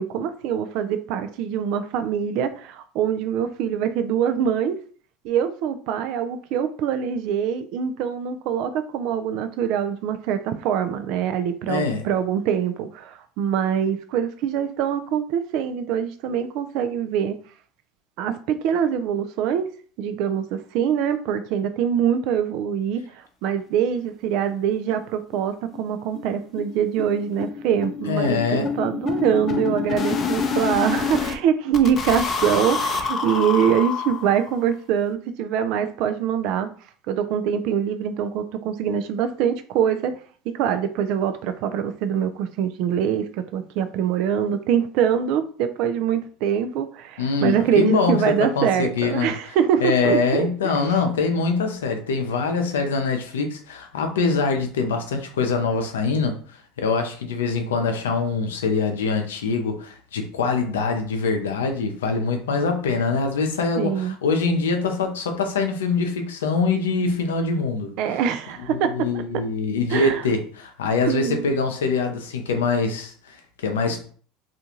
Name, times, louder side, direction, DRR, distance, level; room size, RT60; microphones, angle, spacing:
voice 1, 0.0-4.8 5.2-17.4 18.2-19.7 20.0-36.7 37.1-40.2 40.5-51.0 63.8-64.1 68.0-69.4 69.9-70.2 71.1-71.5, right 8 dB, 65° right, 0.3 m, -24 dB
voice 2, 11.7-12.1 28.1-28.7 47.2-49.3 49.8-56.4 56.8-67.9 68.7-73.4 73.6-74.0, left 4 dB, 90° left, 0.6 m, -24 dB
sound 1, 24.5-24.6 24.9-25.0 25.3-25.4 25.7-25.9 26.1-31.4 31.7-34.5, left 5 dB, 40° left, 0.5 m, -27 dB
2.5 x 2.4 x 2.9 m
hypercardioid pair, 90°, 0 cm